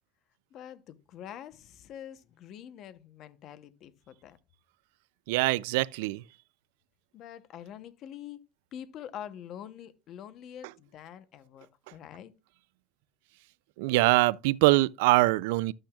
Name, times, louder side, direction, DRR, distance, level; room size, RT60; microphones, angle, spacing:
voice 1, 0.5-4.4 7.1-8.4 8.7-12.3, left 10 dB, 40° left, 0.8 m, -45 dB
voice 2, 5.3-6.2 13.8-15.7, right 20 dB, 80° right, 0.3 m, -23 dB
11.5 x 8.8 x 2.3 m
cardioid pair, 160°, 0 cm